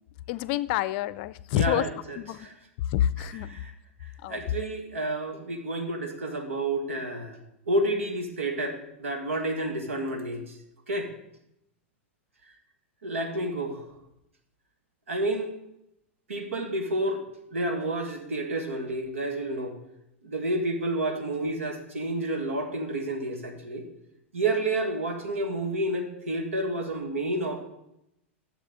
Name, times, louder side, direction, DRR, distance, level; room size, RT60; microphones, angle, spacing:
voice 1, 0.3-1.9 2.2-2.5 2.9-3.6 4.2-4.4, left 13 dB, 50° left, 0.5 m, -28 dB
voice 2, 1.5-2.5 3.5-3.7 4.3-7.4 7.7-10.4 10.9-11.1 13.0-13.8 15.1-15.5 16.3-17.2 17.5-19.7 20.2-23.8 24.3-27.6, right 1 dB, 80° right, 1.7 m, -30 dB
13.5 x 7.3 x 3.8 m
hypercardioid pair, 100°, 7 cm